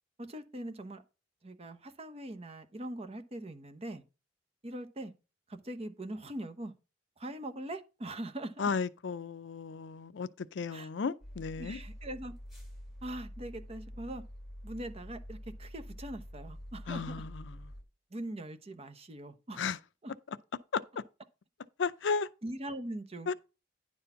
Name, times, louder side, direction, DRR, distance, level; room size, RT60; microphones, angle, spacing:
voice 1, 0.2-1.0 1.4-4.0 4.6-5.1 5.5-6.7 7.2-8.5 10.7-10.9 11.6-12.3 13.0-14.2 14.6-17.1 18.1-19.6 20.0-20.1 22.4-23.3, right 1 dB, 35° right, 0.9 m, -41 dB
voice 2, 8.6-11.8 16.9-17.7 19.6-19.8 20.7-21.0 21.8-22.3 23.3-23.4, left 5 dB, 70° left, 0.5 m, -34 dB
sound 1, 11.2-17.8, equal, ahead, 2.7 m, -47 dB
10.0 x 4.2 x 5.6 m
head